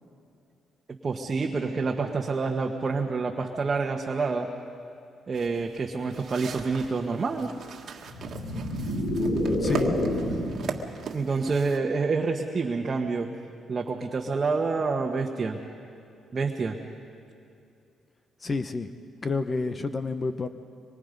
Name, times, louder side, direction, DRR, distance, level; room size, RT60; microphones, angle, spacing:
voice 1, 1.0-4.5 5.3-7.5 11.1-13.3 13.7-15.6 16.3-16.8, right 4 dB, 35° right, 1 dB, 1.3 m, -27 dB
sound 1, 5.3-11.8, right 6 dB, 60° right, 1.7 m, -38 dB
sound 2, 8.1-10.6, left 1 dB, 75° left, 6.9 m, -28 dB
voice 2, 9.6-10.0 18.4-18.9 19.2-20.5, left 3 dB, 35° left, 10 dB, 0.9 m, -29 dB
25.0 x 23.5 x 5.3 m, 2.5 s
cardioid pair, 90°, 0 cm